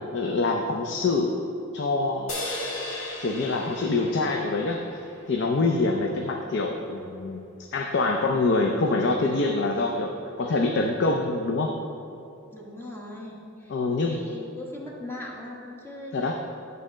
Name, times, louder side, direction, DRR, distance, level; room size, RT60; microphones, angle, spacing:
voice 1, 0.1-1.4 1.7-2.3 3.2-7.4 7.7-10.1 10.4-11.7 13.7-14.2 16.1-16.4, left 3 dB, 60° left, 2 dB, 0.5 m, -25 dB
sound 1, 2.3-5.8, left 1 dB, 90° left, 1.8 m, -36 dB
voice 2, 12.5-16.3, left 1 dB, 10° left, -3 dB, 1.2 m, -40 dB
8.8 x 4.1 x 6.2 m, 2.8 s
head